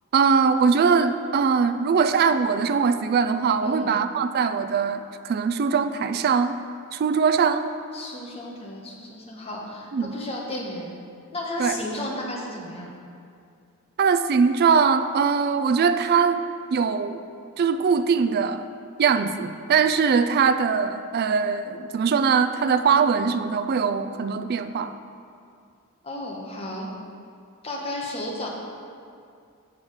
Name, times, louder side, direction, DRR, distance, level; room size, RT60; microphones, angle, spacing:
voice 1, 0.1-6.6 6.9-7.7 9.9-10.1 11.6-11.8 14.0-16.4 16.7-17.2 17.6-18.6 19.0-24.9, right 5 dB, 45° right, 10 dB, 0.3 m, -21 dB
voice 2, 3.6-3.9 7.9-10.9 11.3-12.9 26.0-26.9 27.6-28.5, left 1 dB, 25° left, -2 dB, 1.1 m, -33 dB
6.9 x 4.8 x 6.3 m, 2.4 s
head